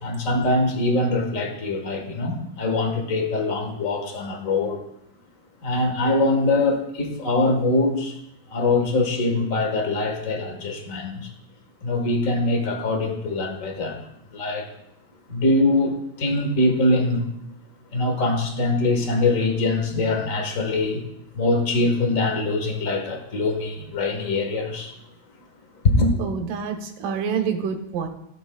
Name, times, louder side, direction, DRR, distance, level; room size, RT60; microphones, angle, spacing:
voice 1, 0.0-4.8 5.6-8.2 8.5-11.3 11.8-14.0 14.3-14.7 15.3-17.3 17.9-21.0 21.3-24.9 25.8-26.1, left 2 dB, 60° left, 3 dB, 0.8 m, -23 dB
voice 2, 26.2-28.1, right 6 dB, 85° right, 5 dB, 2.7 m, -27 dB
16.0 x 9.0 x 2.3 m, 0.78 s
omnidirectional pair, 3.7 m